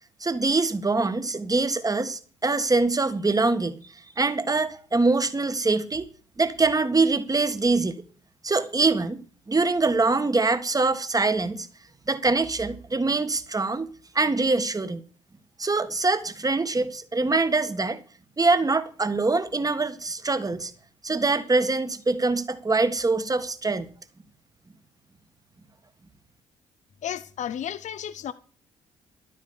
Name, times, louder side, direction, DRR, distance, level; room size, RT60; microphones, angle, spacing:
voice 1, 0.2-3.8 4.2-6.1 6.4-8.0 8.4-9.2 9.5-11.7 12.1-13.9 14.1-15.1 15.6-18.0 18.4-20.7 21.0-23.9, right 3 dB, 25° right, 1.9 m, -24 dB
voice 2, 27.0-28.3, left 9 dB, 55° left, 1.0 m, -33 dB
12.5 x 9.4 x 7.0 m
hypercardioid pair, 45°, 15 cm